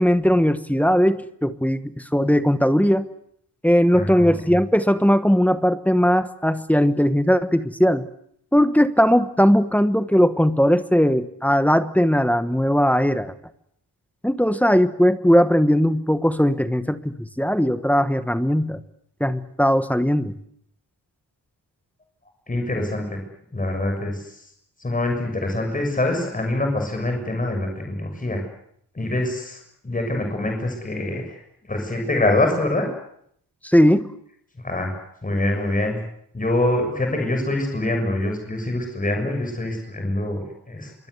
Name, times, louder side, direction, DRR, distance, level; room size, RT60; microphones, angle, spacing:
voice 1, 0.0-3.1 3.6-8.1 8.5-13.3 14.2-18.8 19.2-20.4 33.6-34.1, equal, 5° left, 11 dB, 1.1 m, -19 dB
voice 2, 3.9-4.5 22.5-23.2 23.5-24.2 24.8-28.4 28.9-29.6 29.8-31.4 31.7-32.9 34.6-35.0 35.2-36.0 36.3-40.9, left 1 dB, 20° left, 3 dB, 6.7 m, -24 dB
26.0 x 23.5 x 8.1 m, 0.69 s
wide cardioid pair, 180°, 41 cm